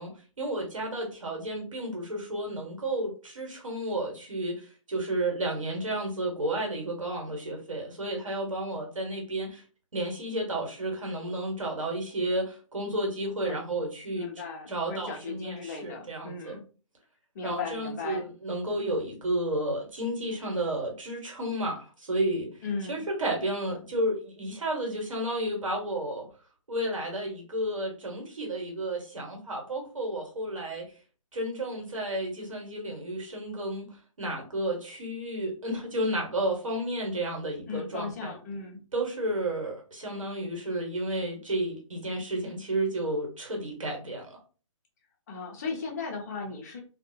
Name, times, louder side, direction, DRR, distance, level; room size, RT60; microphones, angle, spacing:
voice 1, 0.0-9.6 9.9-14.3 14.7-16.6 17.4-22.5 22.9-26.3 26.7-30.8 31.3-33.9 34.2-38.3 38.9-44.4, right 1 dB, 75° right, 1 dB, 1.3 m, -32 dB
voice 2, 14.1-16.6 17.3-18.3 22.6-23.1 37.7-38.8 45.3-46.8, left 4 dB, 30° left, 1 dB, 0.7 m, -36 dB
2.5 x 2.3 x 2.8 m, 0.36 s
figure-of-eight pair, 145°, 17 cm